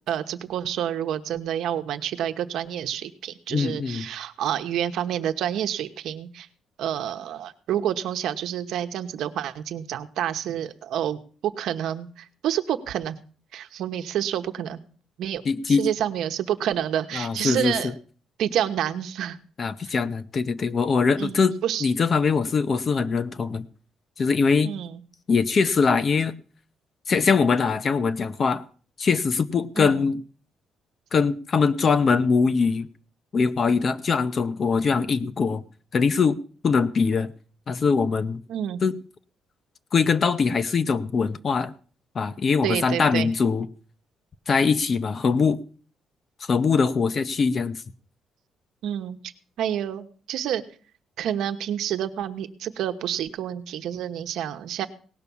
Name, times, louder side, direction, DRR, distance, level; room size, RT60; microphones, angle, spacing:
voice 1, 0.1-6.5 6.8-13.2 13.5-14.8 15.2-15.4 15.7-17.9 18.4-19.4 19.8-19.9 21.2-21.4 21.6-21.9 24.6-25.0 29.8-29.9 38.5-38.8 42.6-43.3 48.8-49.3 49.6-50.6 51.2-54.9, right 10 dB, 75° right, 8 dB, 1.0 m, -28 dB
voice 2, 3.5-4.1 15.4-15.9 17.1-17.9 19.6-21.5 21.8-23.7 24.2-24.8 25.3-26.4 27.1-28.6 29.0-30.2 31.1-32.9 33.3-35.6 35.9-36.4 36.6-37.3 37.7-38.4 38.8-38.9 39.9-41.7 42.1-43.7 44.5-45.6 46.4-47.8, left 5 dB, 35° left, 13 dB, 0.7 m, -22 dB
18.0 x 6.0 x 6.9 m, 0.42 s
cardioid pair, 145°, 0 cm